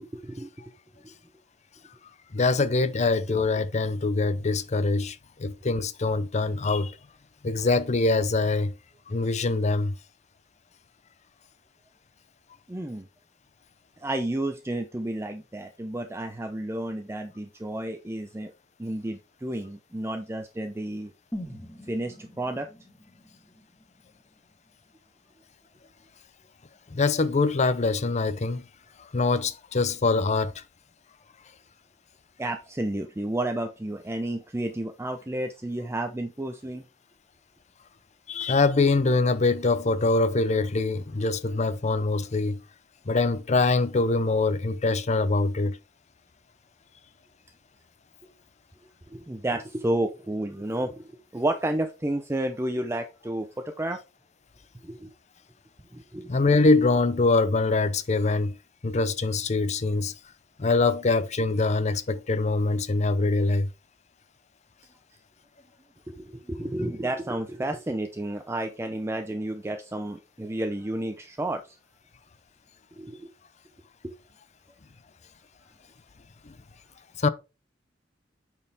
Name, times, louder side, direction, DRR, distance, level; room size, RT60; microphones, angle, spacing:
voice 1, 0.1-0.7 1.0-1.1 12.7-13.1 14.0-18.5 18.8-21.1 21.8-22.7 32.4-36.8 49.1-54.0 54.8-55.1 55.9-56.3 66.1-71.8 73.0-73.3 74.0-74.1, right 1 dB, 15° right, 0.6 m, -31 dB
voice 2, 2.3-7.0 7.4-8.7 9.1-9.9 26.9-28.6 29.1-30.6 38.3-42.6 43.1-45.8 56.3-58.5 58.8-60.1 60.6-63.7 76.5-76.6 77.2-77.3, left 3 dB, 40° left, 0.6 m, -24 dB
sound 1, 21.3-25.3 25.6-25.7, equal, 10° left, 1.7 m, -43 dB
8.6 x 4.6 x 3.5 m
head